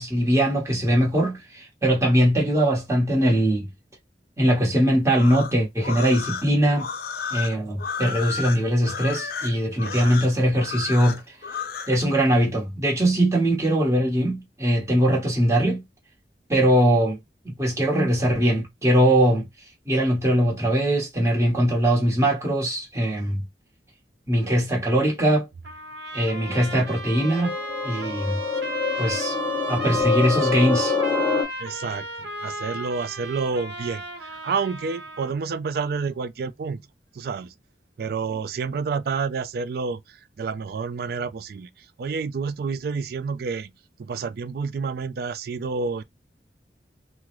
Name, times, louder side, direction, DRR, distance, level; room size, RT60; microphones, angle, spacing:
voice 1, 0.0-3.7 4.4-6.9 7.3-11.2 11.9-15.8 16.5-17.2 17.4-19.4 19.9-23.4 24.3-25.5 26.1-27.5 27.8-28.4 29.0-29.4 29.7-30.9, right 1 dB, 15° right, 1.0 m, -21 dB
sound 1, 5.0-12.0, left 6 dB, 55° left, 0.5 m, -32 dB
voice 2, 9.9-10.2 31.6-36.8 37.1-37.5 38.0-43.7 44.0-46.0, right 5 dB, 60° right, 0.3 m, -29 dB
Trumpet, 25.6-35.3, equal, 85° right, 0.8 m, -34 dB
sound 2, 26.4-31.4, left 4 dB, 10° left, 1.0 m, -26 dB
3.6 x 2.0 x 3.0 m
head